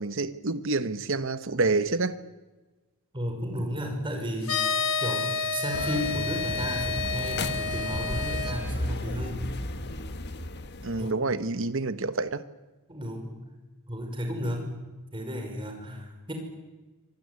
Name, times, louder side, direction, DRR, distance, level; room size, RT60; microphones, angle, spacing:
voice 1, 0.0-2.2 10.8-12.4, right 3 dB, 60° right, 1.2 m, -28 dB
voice 2, 3.1-9.5 11.0-11.3 12.9-13.5 13.9-14.8 15.1-16.3, equal, 25° right, 5.6 m, -33 dB
sound 1, 4.4-8.5, left 5 dB, 75° left, 6.0 m, -30 dB
sound 2, 5.7-11.1, left 1 dB, 50° left, 1.6 m, -34 dB
25.0 x 19.5 x 9.7 m
head